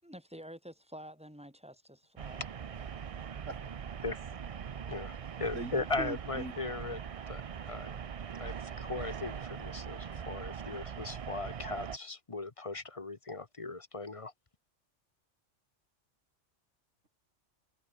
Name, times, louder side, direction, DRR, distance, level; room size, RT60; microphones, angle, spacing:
voice 1, 0.0-2.4, equal, 5° right, 7.1 m, -49 dB
sound 1, 2.2-12.0, right 7 dB, 45° right, 0.4 m, -41 dB
voice 2, 3.1-4.1 5.5-6.5, right 2 dB, 85° right, 5.2 m, -42 dB
voice 3, 4.9-7.0 7.3-7.4 7.7-7.9 8.3-14.3, left 3 dB, 30° left, 1.1 m, -38 dB
omnidirectional pair, 1.2 m